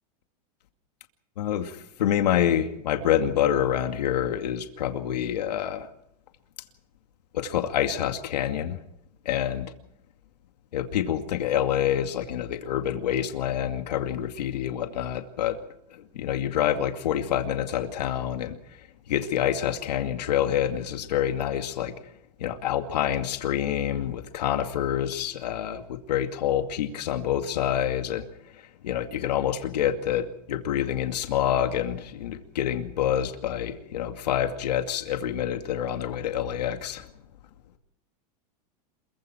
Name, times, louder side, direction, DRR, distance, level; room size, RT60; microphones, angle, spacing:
voice 1, 1.4-5.9 7.3-8.8 9.3-9.7 10.7-15.6 15.9-21.9 22.4-28.3 28.5-37.1, left 10 dB, 90° left, 5 dB, 2.4 m, -27 dB
28.0 x 23.0 x 4.5 m, 0.79 s
supercardioid pair, 150°, 20 cm